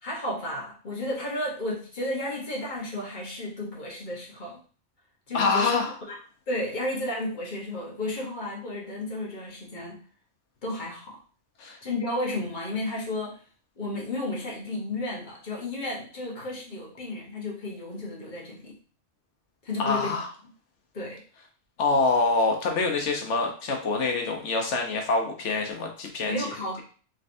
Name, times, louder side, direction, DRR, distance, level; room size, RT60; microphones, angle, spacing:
voice 1, 0.0-4.6 5.3-6.1 6.5-10.0 10.6-11.2 11.8-13.4 13.8-18.8 19.6-20.2 20.9-21.2 26.3-26.8, left 1 dB, 45° left, -3 dB, 1.3 m, -33 dB
voice 2, 5.3-5.9 11.6-11.8 19.8-20.3 21.8-26.5, left 3 dB, 85° left, 2 dB, 1.2 m, -25 dB
4.0 x 3.2 x 2.6 m, 0.41 s
omnidirectional pair, 1.2 m